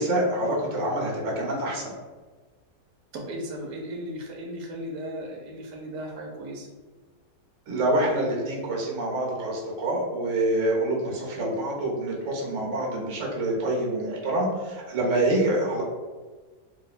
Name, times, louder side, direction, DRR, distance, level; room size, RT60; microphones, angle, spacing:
voice 1, 0.0-1.9 7.7-15.8, right 1 dB, 55° right, -2 dB, 1.0 m, -26 dB
voice 2, 3.1-6.7, equal, 80° right, 0 dB, 1.2 m, -36 dB
2.9 x 2.1 x 4.0 m, 1.3 s
omnidirectional pair, 1.7 m